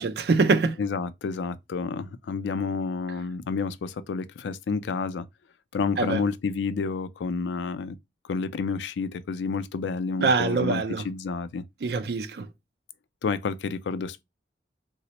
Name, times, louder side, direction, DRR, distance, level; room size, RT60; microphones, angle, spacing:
voice 1, 0.0-0.8 6.0-6.2 10.2-11.0 11.8-12.5, right 4 dB, 65° right, 0.4 m, -24 dB
voice 2, 0.8-5.3 5.7-8.0 8.3-11.6 13.2-14.2, left 5 dB, 90° left, 0.4 m, -30 dB
3.9 x 2.0 x 2.8 m
head